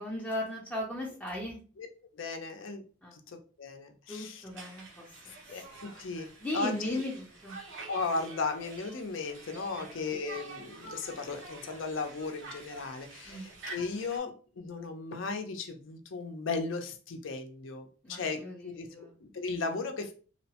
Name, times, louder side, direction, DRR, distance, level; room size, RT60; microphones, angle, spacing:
voice 1, 0.0-1.6 3.0-3.2 4.1-5.1 5.5-5.7 6.4-7.6 9.8-9.9 13.3-13.5 18.0-19.1, left 1 dB, 10° left, -3 dB, 0.5 m, -37 dB
voice 2, 2.1-2.8 3.1-4.4 5.5-5.6 6.0-6.3 6.5-7.0 7.9-20.1, left 4 dB, 75° left, 5 dB, 0.5 m, -36 dB
Conversation, 4.5-14.2, right 2 dB, 75° right, 0.8 m, -47 dB
2.8 x 2.1 x 2.8 m, 0.37 s
head